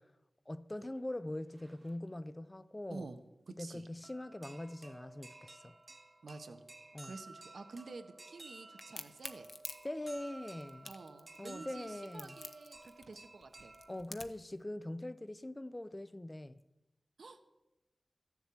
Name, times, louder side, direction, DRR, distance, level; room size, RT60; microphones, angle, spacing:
voice 1, 0.5-3.1 3.6-5.8 6.9-7.1 9.8-10.9 11.4-12.4 13.9-16.6, left 1 dB, 20° left, 0.4 m, -42 dB
sound 1, 1.0-1.1 1.4-2.1 3.5-3.6 4.0-14.0, right 2 dB, 40° right, 1.1 m, -54 dB
voice 2, 3.5-3.9 6.2-6.6 7.0-9.5 10.8-13.7 17.2-17.4, right 3 dB, 85° right, 1.0 m, -49 dB
Crack, 8.8-14.5, left 3 dB, 55° left, 0.9 m, -48 dB
14.0 x 7.3 x 8.1 m
wide cardioid pair, 95°, 0 cm